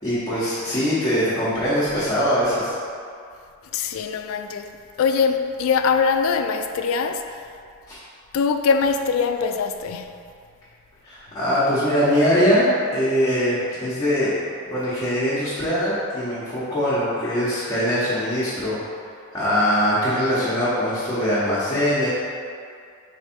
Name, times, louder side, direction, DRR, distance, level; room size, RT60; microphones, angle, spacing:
voice 1, 0.0-2.7 7.9-8.0 11.0-14.3 14.7-18.8 19.3-22.1, equal, 20° left, 0.9 m, -22 dB
voice 2, 3.7-7.4 8.3-10.2, left 5 dB, 75° left, 0.3 m, -22 dB
3.5 x 3.3 x 4.3 m
head